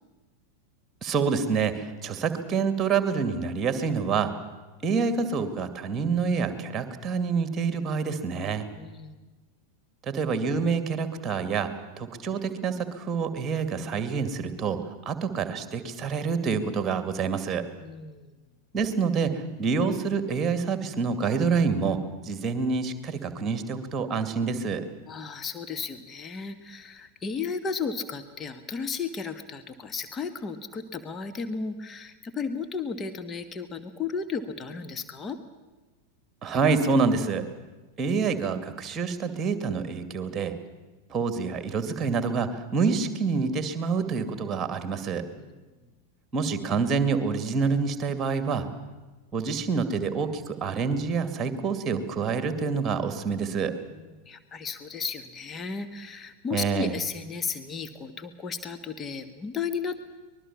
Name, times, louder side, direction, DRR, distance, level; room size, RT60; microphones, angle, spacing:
voice 1, 1.0-4.3 4.8-8.7 10.1-11.7 12.0-14.8 15.1-17.7 18.7-22.0 22.2-24.8 36.4-37.4 38.0-40.5 41.1-45.2 46.3-48.7 49.3-53.7 56.5-56.9, right 5 dB, 20° right, 10 dB, 2.3 m, -27 dB
voice 2, 8.7-9.2 17.8-18.3 25.1-35.4 45.4-45.6 53.9-60.0, left 5 dB, 20° left, 9 dB, 1.5 m, -34 dB
24.0 x 21.0 x 7.3 m, 1.2 s
figure-of-eight pair, 90°, 0 cm